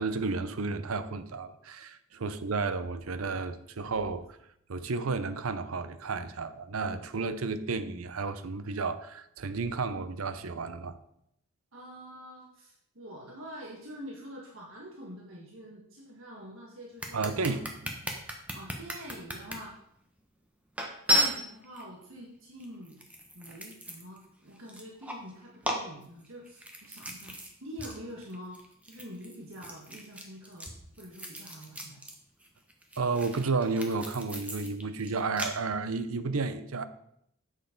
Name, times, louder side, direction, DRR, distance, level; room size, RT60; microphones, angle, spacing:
voice 1, 0.0-4.3 4.7-11.0 17.1-17.7 33.0-36.8, right 4 dB, 85° right, 0.7 m, -32 dB
voice 2, 11.7-17.9 18.5-19.7 21.1-23.0 23.3-30.7 31.0-32.0, equal, 70° right, 1.6 m, -46 dB
sound 1, 17.0-19.6 20.2-20.3 20.8-21.8 22.6-24.2 24.6-25.3 25.6-27.5 27.8-28.0 28.2-32.1 32.4-35.5, equal, 5° right, 1.1 m, -34 dB
7.7 x 6.4 x 5.2 m
head